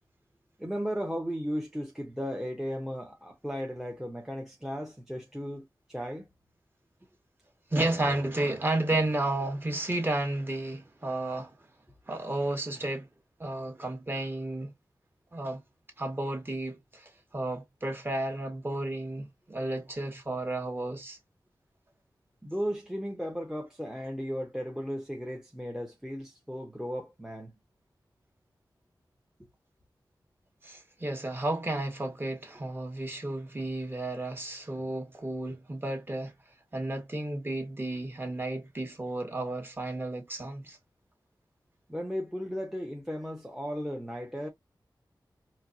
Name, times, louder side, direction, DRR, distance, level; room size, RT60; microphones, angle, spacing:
voice 1, 0.6-6.3 22.4-27.6 41.9-44.5, equal, 5° right, 0.9 m, -35 dB
voice 2, 7.7-11.5 12.1-13.1 13.4-14.7 15.3-15.6 16.0-21.2 30.6-36.3 36.7-40.8, right 2 dB, 25° right, 1.5 m, -32 dB
4.4 x 2.2 x 2.7 m
wide cardioid pair, 90°, 8 cm